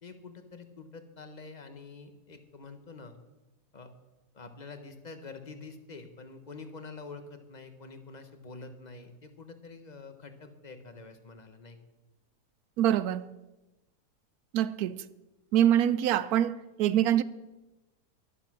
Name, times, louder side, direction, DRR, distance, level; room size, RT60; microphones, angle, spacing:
voice 1, 0.0-3.2 3.7-3.9 4.3-11.8, left 4 dB, 30° left, 1.2 m, -47 dB
voice 2, 12.8-13.3 14.5-15.0 15.5-17.2, right 11 dB, 75° right, 1.0 m, -25 dB
12.0 x 11.5 x 6.1 m
omnidirectional pair, 1.7 m